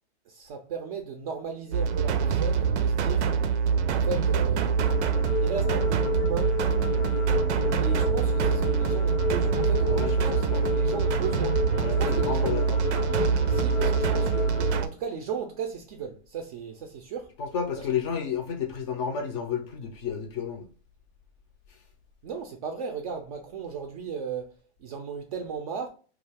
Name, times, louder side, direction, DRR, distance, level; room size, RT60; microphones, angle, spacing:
voice 1, 0.3-3.3 3.8-4.8 5.4-6.5 7.8-11.6 12.0-12.5 13.5-17.3 17.8-17.9 22.2-24.5 24.8-25.9, right 6 dB, 35° right, 0.4 m, -36 dB
sound 1, 1.7-14.9, right 6 dB, 85° right, 0.5 m, -25 dB
sound 2, 4.8-14.8, left 5 dB, 90° left, 0.5 m, -32 dB
voice 2, 9.8-10.7 11.8-12.8 17.4-20.7, left 7 dB, 30° left, 0.4 m, -31 dB
2.3 x 2.3 x 3.3 m
hypercardioid pair, 135°, 33 cm